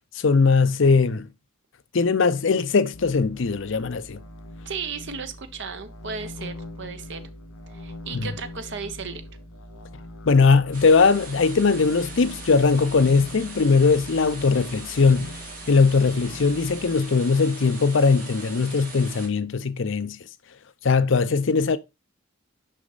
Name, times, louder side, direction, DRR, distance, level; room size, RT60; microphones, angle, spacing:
voice 1, 0.1-1.3 1.9-4.2 8.1-8.3 10.3-15.3 15.7-20.2 20.8-21.8, left 4 dB, 60° left, 0.5 m, -20 dB
sound 1, 2.9-17.0, left 1 dB, 90° left, 1.8 m, -42 dB
voice 2, 4.6-7.2 7.7-9.2, right 5 dB, 60° right, 0.8 m, -35 dB
sound 2, 10.7-19.3, right 3 dB, 40° right, 1.9 m, -41 dB
6.4 x 5.3 x 3.8 m
head